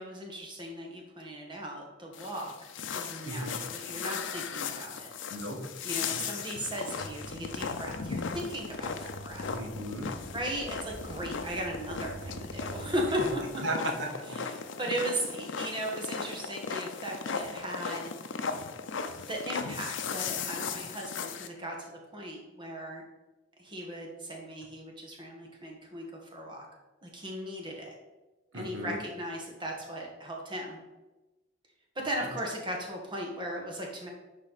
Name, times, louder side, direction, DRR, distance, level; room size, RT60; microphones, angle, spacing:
voice 1, 0.0-5.1 5.8-9.5 10.3-13.4 14.3-18.1 19.3-23.0 23.6-26.0 26.3-26.7 27.0-27.9 28.5-30.8 31.9-34.1, equal, 25° right, 0 dB, 1.5 m, -37 dB
sound 1, 2.1-21.5, left 5 dB, 80° left, 0.6 m, -37 dB
voice 2, 3.2-3.6 5.3-5.7 6.1-6.2 9.5-10.1 13.6-14.4 28.5-29.0, right 1 dB, 80° right, 1 dB, 1.6 m, -35 dB
sound 2, 7.0-13.3, right 1 dB, 60° right, 1.3 m, -45 dB
10.5 x 4.4 x 4.1 m, 1.1 s
head